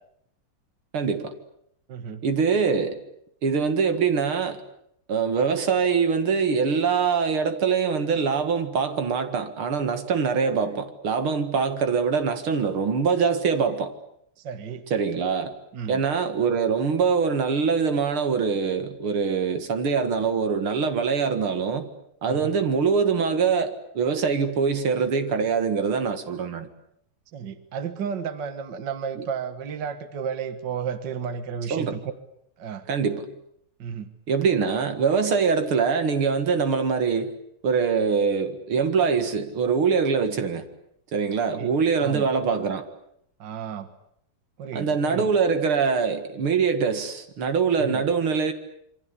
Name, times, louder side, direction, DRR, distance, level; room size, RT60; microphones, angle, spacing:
voice 1, 0.9-1.3 2.2-3.0 3.4-4.6 5.1-13.9 14.9-15.5 15.9-21.9 22.2-26.7 31.7-32.0 32.9-33.3 34.3-37.3 37.6-40.6 41.1-42.9 44.7-48.5, right 5 dB, 85° right, 2.8 m, -23 dB
voice 2, 1.9-2.2 14.4-14.9 15.7-16.0 22.2-22.6 27.3-32.1 32.6-32.9 33.8-34.1 41.5-42.3 43.4-43.9 44.6-45.3 47.8-48.0, right 7 dB, 60° right, 2.0 m, -33 dB
27.5 x 24.0 x 8.4 m
omnidirectional pair, 2.3 m